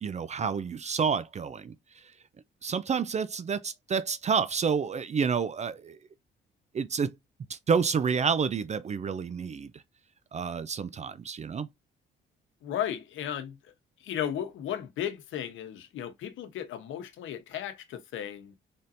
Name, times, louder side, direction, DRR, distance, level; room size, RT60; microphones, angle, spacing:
voice 1, 0.0-2.1 2.6-6.0 6.7-7.1 7.5-9.8 10.3-11.7, right 6 dB, 35° right, 0.4 m, -29 dB
voice 2, 12.6-13.7 14.0-18.5, left 10 dB, 80° left, 0.9 m, -35 dB
4.1 x 3.6 x 2.6 m
cardioid pair, 90°, 20 cm